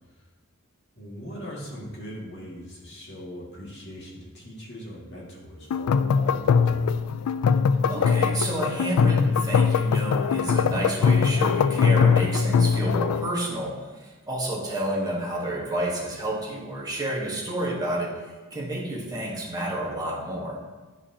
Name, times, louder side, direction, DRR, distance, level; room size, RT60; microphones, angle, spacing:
voice 1, 0.9-6.9, equal, 55° left, -5 dB, 2.1 m, -40 dB
sound 1, 5.7-13.3, left 6 dB, 80° left, 0.3 m, -21 dB
voice 2, 7.9-18.1 18.5-20.6, right 1 dB, 20° right, -4 dB, 1.3 m, -30 dB
10.5 x 4.8 x 2.8 m, 1.3 s
head